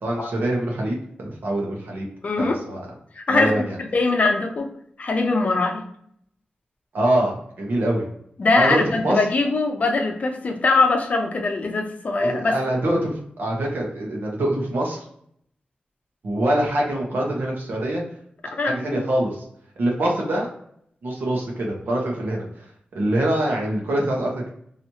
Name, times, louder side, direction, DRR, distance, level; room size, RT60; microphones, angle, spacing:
voice 1, 0.0-2.0 2.4-2.9 3.3-3.8 6.9-8.1 8.5-9.2 12.2-15.0 16.2-18.0 18.6-19.4 19.8-20.5 21.0-22.6 22.9-24.5, right 1 dB, 85° right, -1 dB, 1.3 m, -24 dB
voice 2, 2.2-2.6 3.2-3.5 3.8-4.7 5.0-5.8 8.4-12.6 18.6-19.0, left 3 dB, 45° left, 3 dB, 0.6 m, -22 dB
3.1 x 3.0 x 2.8 m, 0.68 s
wide cardioid pair, 165°, 3 cm